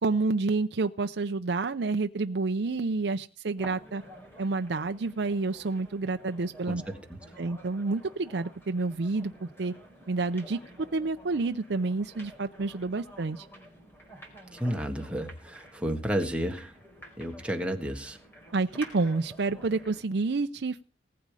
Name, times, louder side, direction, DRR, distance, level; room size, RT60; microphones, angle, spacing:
voice 1, 0.0-4.0 4.4-6.8 7.4-9.7 10.1-13.5 18.5-20.8, right 3 dB, 70° right, 7 dB, 0.6 m, -29 dB
sound 1, 3.6-20.1, right 1 dB, 15° left, 4.5 m, -50 dB
voice 2, 6.7-7.2 14.5-16.7 17.2-18.2, equal, 5° right, 3 dB, 1.6 m, -32 dB
19.0 x 8.6 x 4.9 m, 0.39 s
head